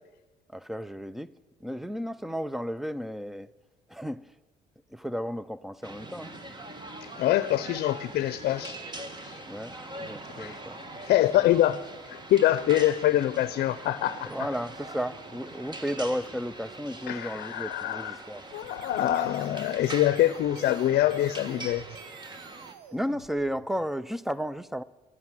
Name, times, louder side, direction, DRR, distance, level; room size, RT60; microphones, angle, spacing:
voice 1, 0.5-1.3 1.6-3.5 3.9-4.3 4.9-6.3 9.5-10.8 14.2-18.4 22.9-24.8, equal, ahead, 0.4 m, -33 dB
sound 1, 5.8-22.7, right 2 dB, 25° right, 1.5 m, -42 dB
voice 2, 7.0-8.8 9.2-9.4 10.4-10.6 11.0-14.5 17.1-18.1 18.5-22.0, left 13 dB, 65° left, 0.6 m, -25 dB
sound 2, 18.4-23.9, right 9 dB, 90° right, 0.9 m, -50 dB
12.0 x 9.5 x 8.9 m
cardioid pair, 110°, 17 cm